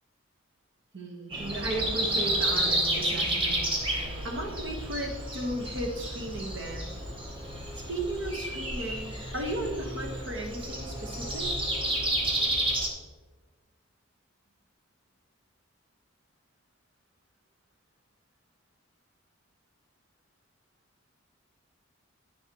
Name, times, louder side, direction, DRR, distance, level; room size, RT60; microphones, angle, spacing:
voice 1, 0.9-3.6 4.0-6.9 7.7-11.5, right 1 dB, 60° right, 1 dB, 1.3 m, -35 dB
Breathing, 1.3-12.9, right 1 dB, 25° right, 0.9 m, -31 dB
9.0 x 6.5 x 3.0 m, 1.3 s
head